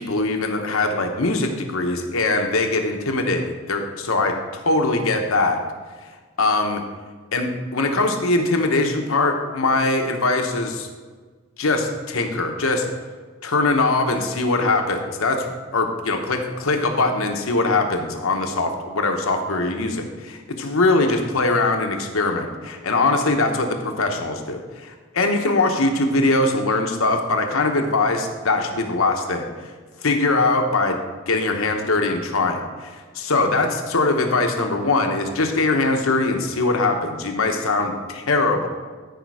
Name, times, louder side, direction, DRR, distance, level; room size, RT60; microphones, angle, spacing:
voice 1, 0.0-5.6 6.4-6.8 7.3-10.9 11.6-12.8 13.4-29.4 30.0-31.0 31.3-38.7, left 2 dB, 85° left, 4 dB, 1.1 m, -22 dB
13.5 x 5.2 x 4.9 m, 1.4 s
head